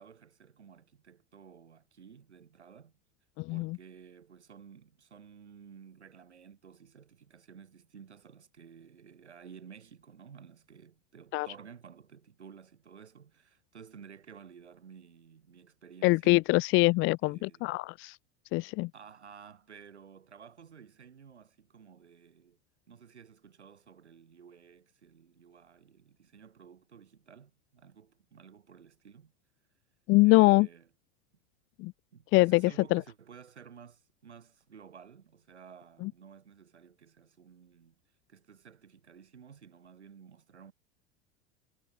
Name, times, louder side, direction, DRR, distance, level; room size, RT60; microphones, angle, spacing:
voice 1, 0.0-2.9 3.5-16.4 17.2-17.7 18.9-22.6 22.9-29.3 30.2-30.9 32.1-38.0 38.3-40.7, right 7 dB, 90° right, 5.9 m, -53 dB
voice 2, 3.4-3.8 11.3-11.5 16.0-18.2 18.5-18.9 30.1-30.7 31.8-31.9 32.3-32.6 32.9-33.0 36.0-36.1, left 23 dB, 40° left, 0.4 m, -24 dB
hypercardioid pair, 90°, 33 cm